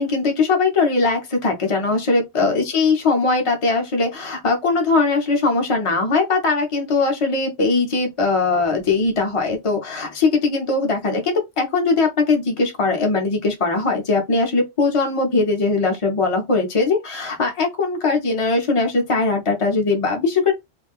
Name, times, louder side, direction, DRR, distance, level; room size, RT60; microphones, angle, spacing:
voice 1, 0.0-20.5, left 3 dB, 35° left, 0.7 m, -20 dB
2.5 x 2.1 x 3.5 m
omnidirectional pair, 1.1 m